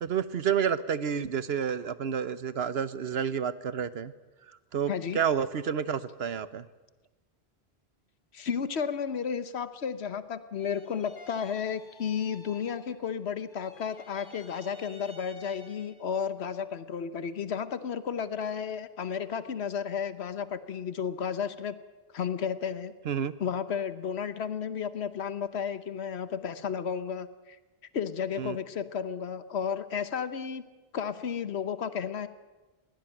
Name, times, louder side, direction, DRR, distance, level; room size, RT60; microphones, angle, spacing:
voice 1, 0.0-4.1 4.5-6.7 23.0-23.3 28.4-28.6, right 7 dB, 75° right, 15 dB, 1.1 m, -30 dB
voice 2, 4.9-5.2 8.3-21.8 22.1-22.9 23.4-27.6 27.9-30.6 30.9-32.3, left 7 dB, 85° left, 13 dB, 1.2 m, -33 dB
sound 1, 10.5-13.2 13.4-16.2, left 2 dB, 55° left, 2.0 m, -53 dB
21.0 x 17.0 x 9.1 m, 1.2 s
omnidirectional pair, 1.1 m